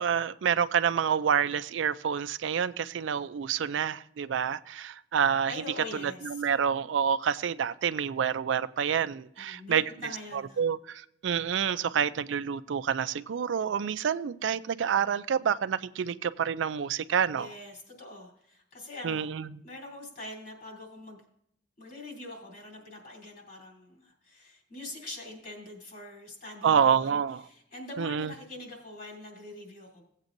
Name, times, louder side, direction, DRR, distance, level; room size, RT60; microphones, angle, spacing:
voice 1, 0.0-5.5 6.0-9.8 10.3-17.5 19.0-19.6 26.6-27.4 28.0-28.3, right 7 dB, 90° right, 14 dB, 0.4 m, -28 dB
voice 2, 5.5-6.4 9.4-10.6 17.3-19.3 19.6-21.2 21.8-30.0, left 2 dB, 55° left, 0 dB, 3.2 m, -44 dB
16.5 x 8.1 x 2.6 m, 0.71 s
head